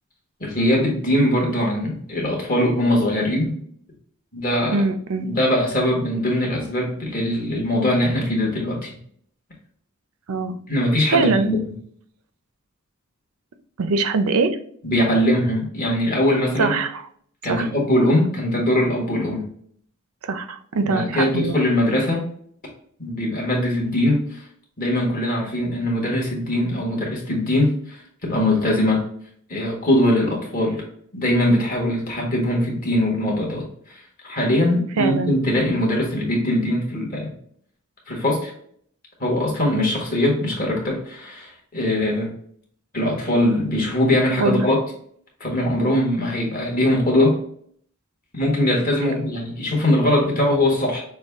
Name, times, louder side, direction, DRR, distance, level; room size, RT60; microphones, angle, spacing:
voice 1, 0.4-3.5 4.3-4.8 5.2-8.9 10.7-11.6 14.8-16.8 17.4-19.5 20.8-22.3 23.0-24.4 24.8-29.0 29.5-30.8 31.1-33.6 33.9-37.3 38.1-38.5 39.2-42.3 42.9-44.8 45.4-47.4 48.3-51.0, left 1 dB, 40° left, -2 dB, 1.5 m, -21 dB
voice 2, 4.7-5.3 10.3-10.6 11.1-11.5 13.8-14.6 16.6-17.1 17.5-17.7 20.2-21.6 35.0-35.3 44.4-44.7, right 3 dB, 85° right, 10 dB, 0.5 m, -22 dB
6.3 x 2.3 x 3.5 m, 0.62 s
head